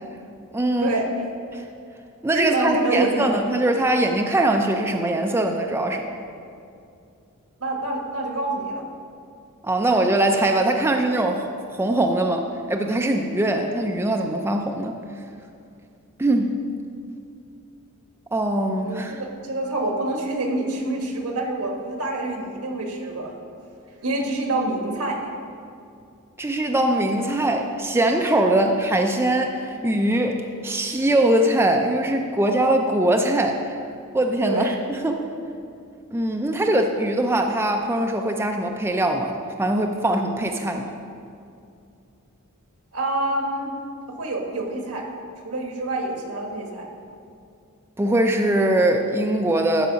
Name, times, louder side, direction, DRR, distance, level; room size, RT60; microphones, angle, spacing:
voice 1, 0.5-0.9 1.5-1.6 2.2-6.1 9.6-14.9 16.2-16.6 18.3-19.2 26.4-33.8 34.1-35.3 36.1-40.9 48.0-49.9, right 1 dB, 10° right, 3 dB, 0.4 m, -22 dB
voice 2, 2.3-3.4 7.6-8.8 18.8-23.3 24.0-25.2 28.5-28.6 34.4-34.7 42.9-43.7 44.1-45.0 45.4-46.9, right 2 dB, 80° right, 1 dB, 1.3 m, -26 dB
12.5 x 4.7 x 5.2 m, 2.5 s
head